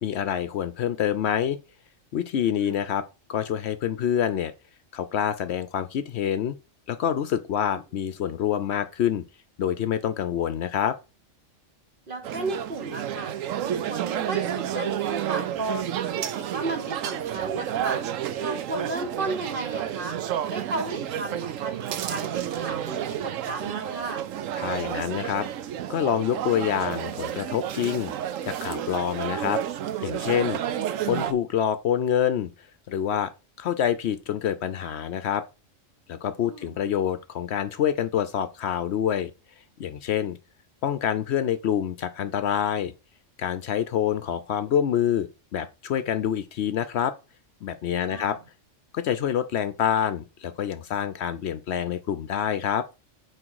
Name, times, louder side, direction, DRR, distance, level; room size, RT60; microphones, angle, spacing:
voice 1, 0.0-1.6 2.1-4.5 4.9-6.5 6.9-9.2 9.6-11.0 24.6-25.5 25.9-28.1 28.4-29.6 30.0-30.6 31.1-32.5 32.9-33.3 33.6-35.4 36.1-39.3 39.8-40.4 40.8-42.9 43.4-47.1 47.6-48.4 48.9-52.9, left 9 dB, 65° left, 0.8 m, -26 dB
voice 2, 2.4-2.7 7.6-7.8 12.1-13.3 13.6-24.3 36.4-36.8 48.0-48.4, right 2 dB, 45° right, 1.2 m, -34 dB
sound 1, 12.2-31.3, right 10 dB, 90° right, 1.0 m, -31 dB
6.2 x 4.7 x 4.6 m
omnidirectional pair, 1.3 m